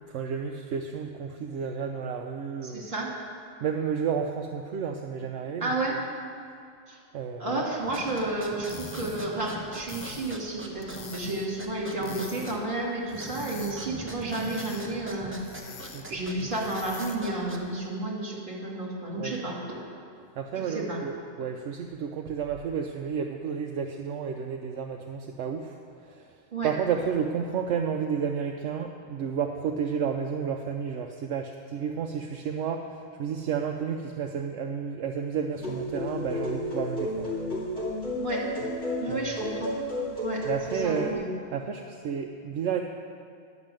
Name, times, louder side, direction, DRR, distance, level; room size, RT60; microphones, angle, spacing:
voice 1, 0.1-2.9 3.6-6.0 7.1-7.7 15.9-16.0 19.1-19.4 20.4-25.8 26.1-26.3 26.6-37.3 39.1-39.3 40.4-41.1 41.5-42.8, right 7 dB, 75° right, 3 dB, 0.9 m, -31 dB
voice 2, 2.6-3.1 5.6-6.0 6.9-7.0 7.4-15.4 16.1-19.6 20.6-21.0 26.5-26.7 38.2-38.5 39.0-39.7 40.2-41.3, right 2 dB, 40° right, -3 dB, 2.2 m, -32 dB
sound 1, 7.8-17.9, right 1 dB, 10° right, 0.8 m, -42 dB
sound 2, 8.5-17.4, left 5 dB, 75° left, 1.2 m, -46 dB
sound 3, 35.5-41.1, left 1 dB, 55° left, 2.9 m, -32 dB
10.5 x 6.2 x 7.5 m, 2.3 s
omnidirectional pair, 1.3 m